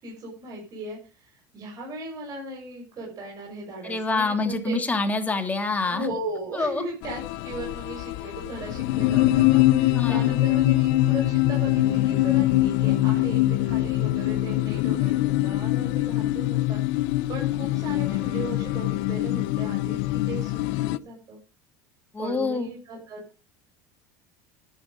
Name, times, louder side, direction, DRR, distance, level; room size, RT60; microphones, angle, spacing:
voice 1, 0.0-4.8 5.8-21.4 22.2-23.2, right 1 dB, 40° right, -1 dB, 6.6 m, -37 dB
voice 2, 3.8-6.1 6.5-6.8 9.9-10.4 22.1-22.7, left 3 dB, 15° left, 6 dB, 2.9 m, -26 dB
sound 1, 7.0-21.0, left 16 dB, 70° left, 0.7 m, -23 dB
12.0 x 10.0 x 5.3 m, 0.32 s
supercardioid pair, 110°, 10 cm